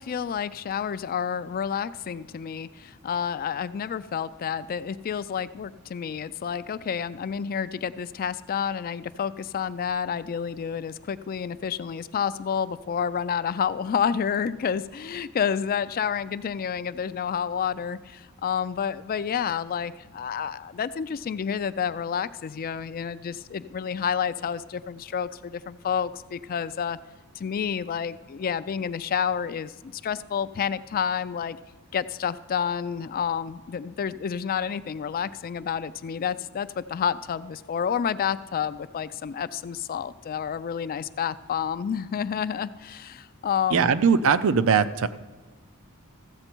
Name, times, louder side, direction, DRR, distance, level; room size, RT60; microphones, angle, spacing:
voice 1, 0.0-27.0 27.3-31.6 31.9-43.9, left 7 dB, 40° left, 14 dB, 0.3 m, -29 dB
voice 2, 43.7-45.1, right 6 dB, 65° right, 14 dB, 0.5 m, -20 dB
14.5 x 7.8 x 4.5 m, 1.3 s
head